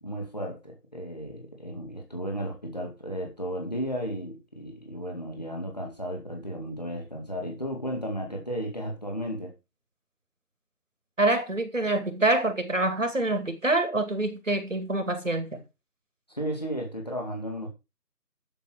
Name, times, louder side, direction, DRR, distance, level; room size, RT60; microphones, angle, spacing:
voice 1, 0.0-9.5 16.3-17.7, equal, 25° left, 2.2 m, -34 dB
voice 2, 11.2-15.6, right 2 dB, 50° right, 2.4 m, -26 dB
10.0 x 6.9 x 4.6 m
figure-of-eight pair, 180°, 47 cm